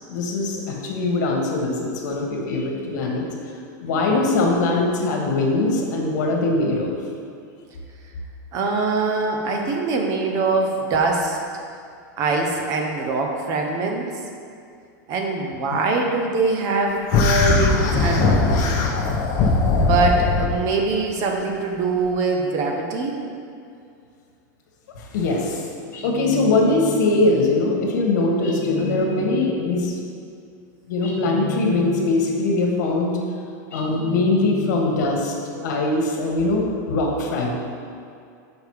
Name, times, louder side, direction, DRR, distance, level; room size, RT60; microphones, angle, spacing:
voice 1, 0.1-3.3 3.8-6.9 15.7-15.8 25.0-25.6 26.0-29.9 30.9-33.1 33.7-37.5, left 2 dB, 75° left, 0 dB, 1.4 m, -22 dB
voice 2, 8.5-11.4 12.2-14.1 15.1-18.9 19.7-23.2, right 3 dB, 35° right, 2 dB, 0.8 m, -23 dB
sound 1, 17.1-20.5, left 3 dB, 40° left, 0.8 m, -19 dB
sound 2, 25.9-27.3 28.4-29.8 31.0-32.4 33.7-35.1, left 2 dB, 20° left, 1.1 m, -31 dB
6.8 x 5.2 x 4.7 m, 2.4 s
supercardioid pair, 160°, 10 cm